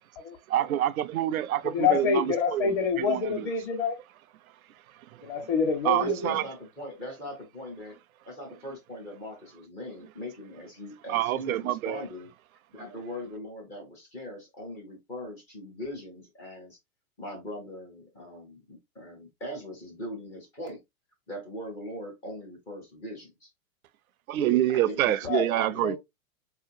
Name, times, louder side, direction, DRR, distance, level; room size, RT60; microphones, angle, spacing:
voice 1, 0.5-3.5 5.8-6.4 11.1-12.0 24.3-26.0, right 13 dB, 75° right, 0.5 m, -27 dB
voice 2, 1.6-4.0 5.2-6.5 25.2-25.5 25.8-26.0, left 6 dB, 40° left, 1.2 m, -27 dB
voice 3, 6.0-8.0 8.3-12.3 12.7-16.8 17.2-20.8 21.3-23.5 24.7-26.0, left 1 dB, 5° left, 0.3 m, -40 dB
4.2 x 2.8 x 2.5 m
hypercardioid pair, 135°, 43 cm